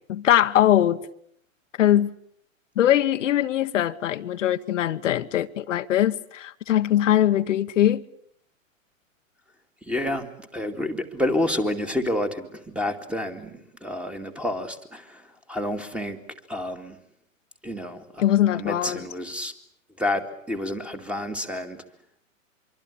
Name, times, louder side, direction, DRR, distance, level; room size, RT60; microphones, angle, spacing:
voice 1, 0.1-1.0 1.8-2.1 2.8-8.0 18.2-19.0, left 12 dB, 65° left, 1.1 m, -21 dB
voice 2, 9.8-16.2 16.5-17.0 17.6-18.2 18.5-19.5 20.0-21.8, left 1 dB, 5° right, 2.3 m, -29 dB
25.0 x 24.5 x 8.4 m
hypercardioid pair, 125°, 40 cm